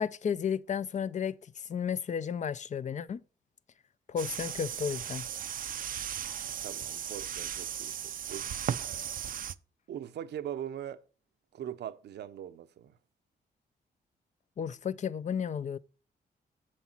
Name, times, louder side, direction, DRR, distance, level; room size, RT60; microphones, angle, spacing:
voice 1, 0.0-1.4 1.7-3.2 4.1-5.2 14.6-15.8, left 7 dB, 45° left, 0.5 m, -33 dB
sound 1, 4.2-9.6, right 9 dB, 55° right, 0.5 m, -36 dB
voice 2, 6.6-8.5 9.9-11.0 11.5-12.9, right 10 dB, 85° right, 0.8 m, -41 dB
7.6 x 7.3 x 4.4 m
cardioid pair, 95°, 17 cm